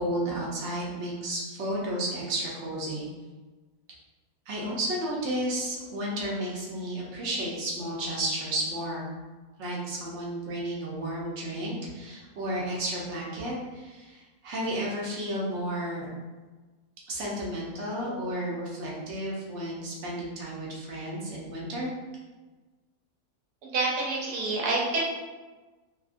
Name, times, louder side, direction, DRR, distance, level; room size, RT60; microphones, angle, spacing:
voice 1, 0.0-3.0 4.5-9.1 9.6-16.1 17.1-21.9, right 1 dB, 60° right, -4 dB, 0.8 m, -32 dB
voice 2, 23.6-25.0, right 3 dB, 85° right, -3 dB, 1.3 m, -27 dB
2.7 x 2.6 x 2.4 m, 1.3 s
omnidirectional pair, 1.6 m